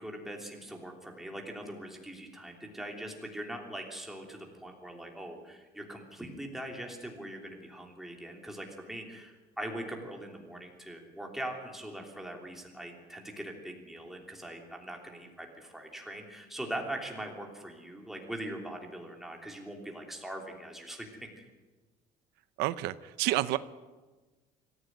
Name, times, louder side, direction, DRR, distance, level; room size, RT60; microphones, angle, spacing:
voice 1, 0.0-21.5, right 1 dB, ahead, 1 dB, 3.1 m, -42 dB
voice 2, 22.6-23.6, right 16 dB, 80° right, 14 dB, 0.8 m, -29 dB
25.0 x 15.0 x 9.3 m, 1.2 s
cardioid pair, 175°, 17 cm